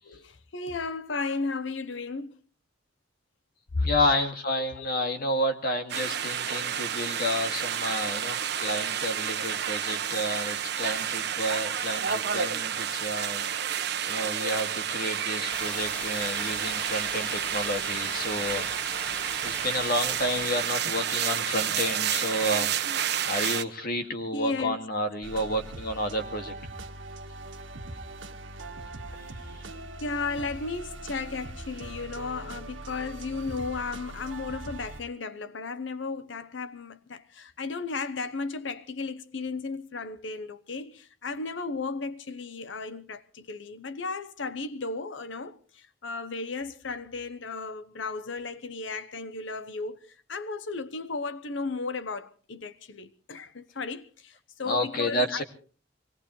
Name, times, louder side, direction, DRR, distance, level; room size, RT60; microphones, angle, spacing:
voice 1, 0.1-2.4 3.7-3.8 4.7-5.0 16.3-16.6 24.3-24.8 30.0-55.4, left 4 dB, 70° left, 0.9 m, -35 dB
voice 2, 3.8-13.5 14.1-18.7 19.4-22.7 23.2-26.5 29.5-29.7 54.6-55.4, left 1 dB, 50° left, 2.2 m, -30 dB
sound 1, 5.9-23.6, right 9 dB, 60° right, 1.1 m, -30 dB
sound 2, 15.5-20.5, equal, 5° left, 1.8 m, -40 dB
sound 3, 25.2-35.0, right 2 dB, 80° right, 1.5 m, -41 dB
24.5 x 18.5 x 3.2 m
head